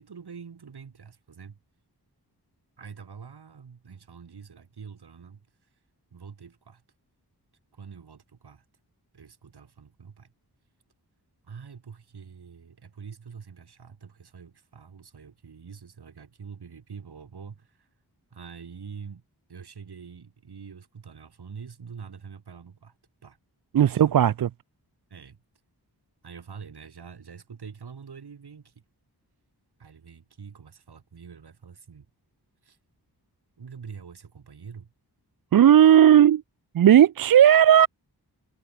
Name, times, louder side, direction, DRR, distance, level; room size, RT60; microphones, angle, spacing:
voice 1, 0.0-1.6 2.8-5.5 6.1-6.8 7.7-8.7 9.1-10.3 11.4-17.9 18.3-19.2 19.5-23.0 23.2-23.4 23.8-24.3 25.1-25.4 26.2-28.8 29.8-32.1 32.6-32.8 33.6-34.9, right 6 dB, 75° right, 2.1 m, -45 dB
voice 2, 23.7-24.5 35.5-36.4 36.7-37.9, right 10 dB, 60° right, 0.5 m, -15 dB
wide cardioid pair, 75°, 40 cm